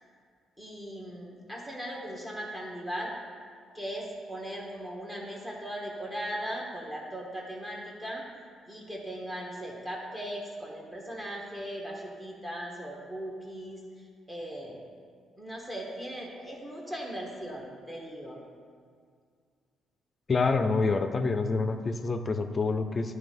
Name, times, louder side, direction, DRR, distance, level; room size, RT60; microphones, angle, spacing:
voice 1, 0.6-3.1 3.7-8.2 8.7-14.9 15.4-18.4, equal, 15° right, -3 dB, 1.3 m, -38 dB
voice 2, 20.3-23.1, left 4 dB, 35° left, 8 dB, 0.5 m, -27 dB
9.5 x 3.3 x 5.3 m, 2.1 s
cardioid pair, 90°, 0 cm